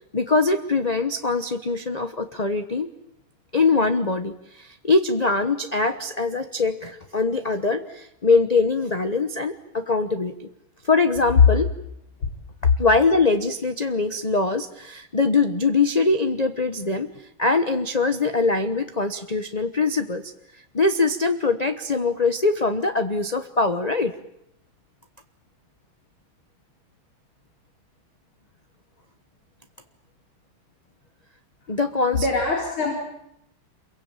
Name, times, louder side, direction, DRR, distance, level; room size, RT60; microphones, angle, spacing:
voice 1, 0.1-2.9 3.5-10.5 10.8-11.7 12.8-17.1 17.4-20.3 20.7-24.1 31.7-32.3, left 3 dB, 30° left, 7 dB, 0.8 m, -22 dB
voice 2, 32.1-32.9, left 4 dB, 75° left, -1 dB, 5.1 m, -22 dB
28.0 x 23.0 x 9.0 m, 0.80 s
omnidirectional pair, 2.3 m